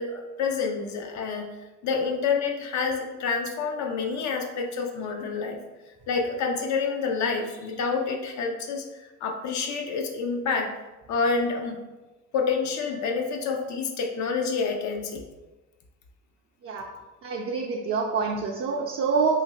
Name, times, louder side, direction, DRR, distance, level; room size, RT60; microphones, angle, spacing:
voice 1, 0.0-1.5 1.8-5.6 6.1-10.7 11.1-11.8 12.3-15.2, left 5 dB, 70° left, 2 dB, 0.5 m, -28 dB
voice 2, 17.2-19.4, right 5 dB, 45° right, 0 dB, 0.4 m, -26 dB
2.9 x 2.5 x 2.9 m, 1.1 s
cardioid pair, 90°, 30 cm